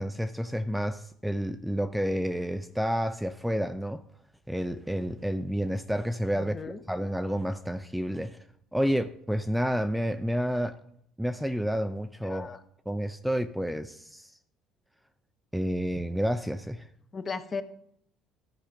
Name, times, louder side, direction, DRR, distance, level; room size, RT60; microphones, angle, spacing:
voice 1, 0.0-4.0 4.5-6.6 6.9-8.4 8.7-10.8 11.2-12.5 12.9-14.3 15.5-16.9, equal, 5° right, 0.5 m, -30 dB
voice 2, 6.3-6.8 12.2-12.6 17.1-17.6, left 4 dB, 30° left, 0.9 m, -36 dB
13.0 x 4.9 x 5.2 m
cardioid pair, 100°, 0 cm